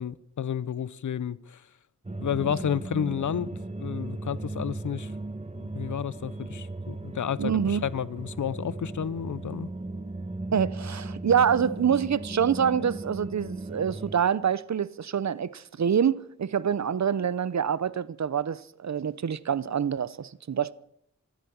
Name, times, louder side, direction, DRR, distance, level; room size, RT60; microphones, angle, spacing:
voice 1, 0.0-1.6 2.2-3.5 3.8-5.1 5.6-9.7, left 8 dB, 80° left, 0.6 m, -31 dB
sound 1, 2.0-14.1, right 2 dB, 20° right, 1.3 m, -37 dB
voice 2, 7.4-7.8 10.5-20.7, right 8 dB, 65° right, 0.7 m, -26 dB
14.5 x 13.5 x 7.0 m
wide cardioid pair, 85°, 30 cm